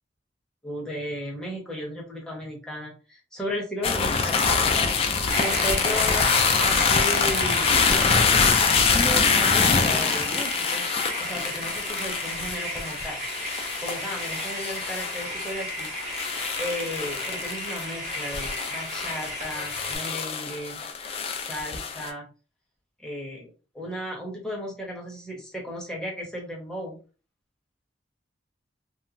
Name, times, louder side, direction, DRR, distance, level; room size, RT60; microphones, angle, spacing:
voice 1, 0.6-4.5 5.4-8.4 8.9-13.2 13.8-16.3 16.6-20.8 21.3-22.3 23.0-27.0, equal, 5° left, -3 dB, 0.8 m, -35 dB
sound 1, 3.8-22.1, left 5 dB, 35° left, 0.3 m, -25 dB
sound 2, 5.3-20.0, equal, 40° right, 1.4 m, -34 dB
2.9 x 2.1 x 2.5 m, 0.34 s
head